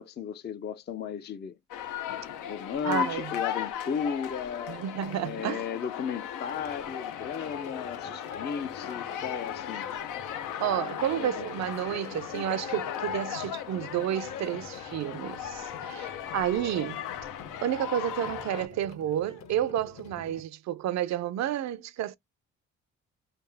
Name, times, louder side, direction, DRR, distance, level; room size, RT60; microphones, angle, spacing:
voice 1, 0.0-1.6 2.5-4.8 5.2-9.9 10.7-11.5, left 7 dB, 35° left, 0.4 m, -35 dB
sound 1, 1.7-18.7, left 9 dB, 85° left, 0.6 m, -36 dB
voice 2, 2.8-3.3 4.7-5.8 10.6-17.0 17.6-22.2, right 11 dB, 65° right, 0.5 m, -31 dB
sound 2, 6.4-20.4, left 4 dB, 60° left, 1.2 m, -50 dB
3.4 x 2.7 x 3.3 m
cardioid pair, 90°, 30 cm